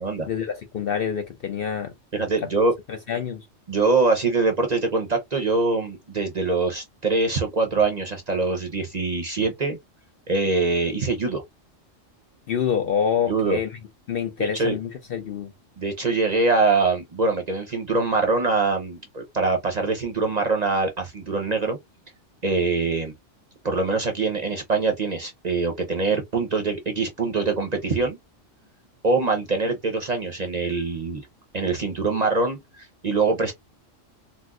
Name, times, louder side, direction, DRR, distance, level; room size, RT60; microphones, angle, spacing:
voice 1, 0.2-1.9 2.9-3.5 12.5-13.7 14.1-15.5, left 7 dB, 60° left, 0.6 m, -26 dB
voice 2, 2.1-2.7 3.7-9.8 10.3-11.4 13.3-13.6 14.4-14.8 15.8-21.8 22.4-23.1 23.6-28.2 29.0-31.2 31.5-33.5, right 3 dB, 40° right, 0.7 m, -23 dB
4.2 x 2.0 x 2.3 m
omnidirectional pair, 1.3 m